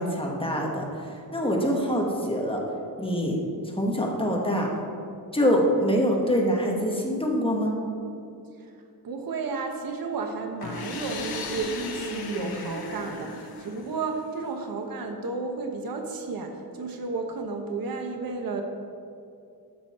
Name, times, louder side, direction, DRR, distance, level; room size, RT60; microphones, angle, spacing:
voice 1, 0.0-2.6 3.0-3.4 3.8-4.7 5.3-7.7, equal, 15° left, -1 dB, 1.2 m, -25 dB
voice 2, 9.0-18.6, right 4 dB, 65° right, 4 dB, 1.1 m, -32 dB
sound 1, 10.6-14.4, left 3 dB, 75° left, 1.1 m, -36 dB
12.0 x 6.3 x 4.2 m, 2.5 s
wide cardioid pair, 170°, 37 cm